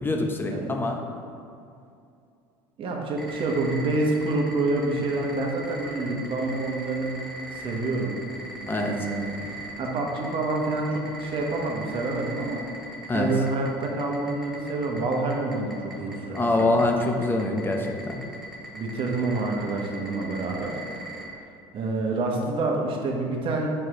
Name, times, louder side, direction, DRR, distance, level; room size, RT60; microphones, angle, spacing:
voice 1, 0.0-1.0 8.7-9.0 13.1-13.3 16.3-18.2, left 2 dB, 20° left, 3 dB, 0.7 m, -24 dB
voice 2, 2.8-7.1 7.5-8.2 8.6-9.3 9.8-12.6 13.1-16.8 18.7-20.8 21.7-23.7, right 2 dB, 45° right, 0 dB, 1.1 m, -27 dB
sound 1, 3.2-21.3, right 1 dB, ahead, 1.4 m, -40 dB
4.9 x 4.4 x 4.8 m, 2.5 s
supercardioid pair, 100°, 12 cm